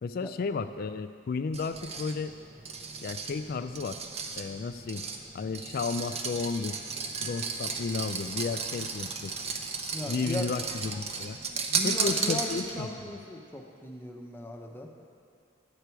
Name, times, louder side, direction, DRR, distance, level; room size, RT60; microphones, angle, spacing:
voice 1, 0.0-2.3 3.0-4.0 4.4-5.0 5.3-6.8 7.2-9.3 10.1-11.4 11.8-12.9, left 4 dB, 55° left, 11 dB, 0.3 m, -33 dB
sound 1, 1.5-12.9, right 5 dB, 35° right, 0.7 m, -34 dB
voice 2, 9.9-10.5 11.4-14.9, left 1 dB, 10° left, 1 dB, 0.8 m, -38 dB
10.5 x 8.3 x 4.6 m, 2.5 s
head